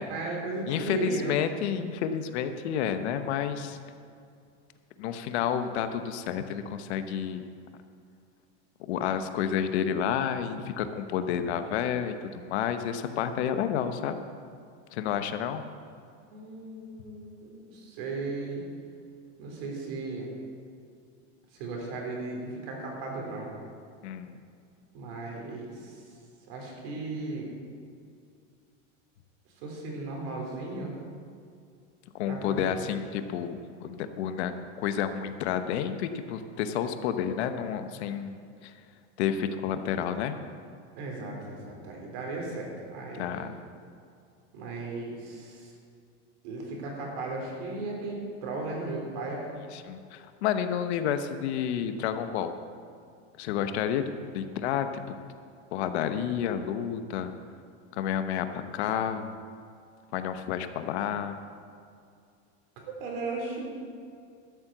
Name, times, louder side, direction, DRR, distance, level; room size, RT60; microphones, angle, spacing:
voice 1, 0.0-1.4 16.3-18.6 19.4-20.3 21.5-23.6 24.9-26.0 26.5-27.5 29.6-30.9 32.3-32.9 41.0-43.3 44.5-45.7 46.4-49.4 62.8-63.8, right 3 dB, 55° right, 0 dB, 3.7 m, -36 dB
voice 2, 0.7-3.8 5.0-7.4 8.9-14.2 14.9-15.6 24.0-24.4 32.1-38.7 39.2-40.4 43.2-43.5 49.7-52.5 53.4-54.0 54.3-55.0 55.7-57.3 57.9-59.4 60.1-61.4, left 8 dB, 70° left, 9 dB, 1.0 m, -30 dB
13.0 x 7.5 x 7.8 m, 2.4 s
supercardioid pair, 170°, 35 cm